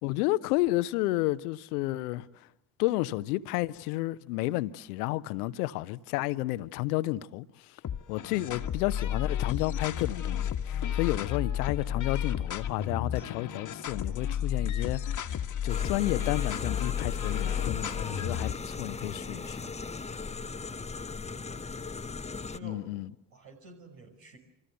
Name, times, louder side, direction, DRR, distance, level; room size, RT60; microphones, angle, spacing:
voice 1, 0.0-2.3 2.8-7.8 8.1-15.2 15.6-19.7 22.6-23.1, left 18 dB, 65° left, 1.0 m, -31 dB
sound 1, 7.8-18.7, left 9 dB, 35° left, 1.6 m, -32 dB
voice 2, 8.3-8.6 20.4-20.6 21.2-21.8 22.5-23.0 23.3-24.4, right 2 dB, 70° right, 5.6 m, -51 dB
sound 2, 15.7-22.6, left 4 dB, 15° left, 1.0 m, -38 dB
28.0 x 26.5 x 8.1 m
figure-of-eight pair, 45°, 49 cm